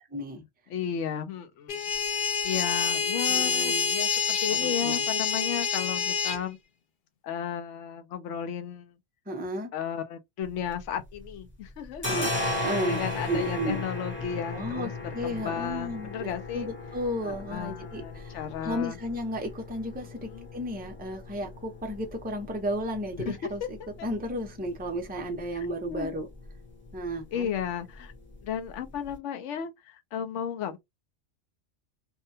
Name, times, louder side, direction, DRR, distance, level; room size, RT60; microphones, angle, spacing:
voice 1, 0.1-0.4 3.2-4.0 4.5-5.0 9.3-9.7 12.1-12.3 12.6-13.0 13.3-13.8 14.5-26.3 26.9-27.5, equal, 10° right, 0.4 m, -33 dB
voice 2, 0.7-1.8 2.4-6.6 7.2-8.9 9.7-12.3 12.9-14.9 15.2-16.7 17.2-19.0 20.2-20.5 23.2-23.4 23.8-24.1 25.5-26.2 27.3-28.1 28.4-30.8, left 8 dB, 80° left, 0.9 m, -34 dB
sound 1, 1.7-6.4, left 6 dB, 55° left, 0.6 m, -27 dB
sound 2, 10.4-11.4 11.6-29.1, left 2 dB, 10° left, 0.9 m, -38 dB
2.7 x 2.2 x 2.6 m
omnidirectional pair, 1.2 m